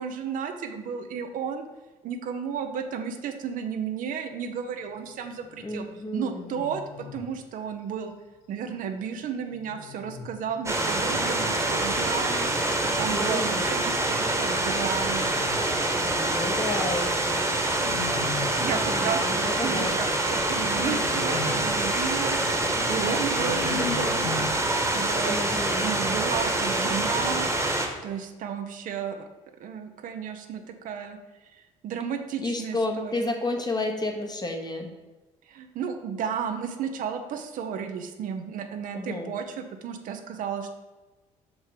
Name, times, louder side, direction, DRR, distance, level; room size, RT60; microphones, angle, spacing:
voice 1, 0.0-1.7 2.0-5.8 6.1-8.1 8.5-12.5 12.8-15.3 18.6-22.4 22.9-24.4 24.9-25.4 25.8-27.5 28.0-29.3 29.6-31.2 31.5-33.3 35.5-40.7, right 7 dB, 65° right, 6 dB, 0.7 m, -33 dB
sound 1, 5.2-5.8 6.3-7.4 8.7-11.2 14.5-16.0 17.7-18.9 19.6-24.5, left 6 dB, 80° left, 0.8 m, -39 dB
voice 2, 5.6-6.4 13.1-13.6 16.2-17.3 18.6-20.0 25.2-25.9 32.4-34.9 38.9-39.3, left 2 dB, 25° left, 3 dB, 1.2 m, -31 dB
sound 2, 10.7-27.9, right 2 dB, 20° right, 1.3 m, -26 dB
5.4 x 4.8 x 5.0 m, 1.2 s
supercardioid pair, 70°, 15 cm